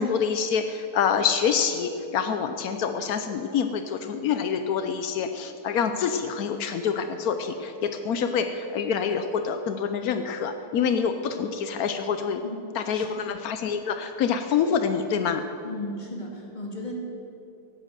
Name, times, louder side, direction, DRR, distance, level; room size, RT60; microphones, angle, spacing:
voice 1, 0.0-12.4 12.7-15.4, left 6 dB, 80° left, 8 dB, 0.8 m, -26 dB
voice 2, 12.9-13.3 15.6-16.9, left 1 dB, 20° left, 0 dB, 2.2 m, -36 dB
16.5 x 9.2 x 7.5 m, 2.7 s
omnidirectional pair, 2.4 m